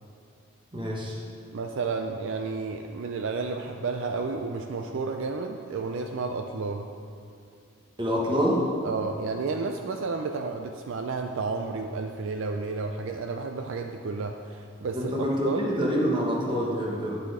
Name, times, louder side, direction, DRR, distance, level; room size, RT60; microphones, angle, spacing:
voice 1, 0.7-1.2 8.0-8.6 14.9-17.2, equal, 20° right, -3 dB, 1.1 m, -26 dB
voice 2, 1.5-6.9 8.8-15.1 15.4-15.7, right 4 dB, 60° right, 4 dB, 0.4 m, -31 dB
11.0 x 4.2 x 4.9 m, 2.4 s
head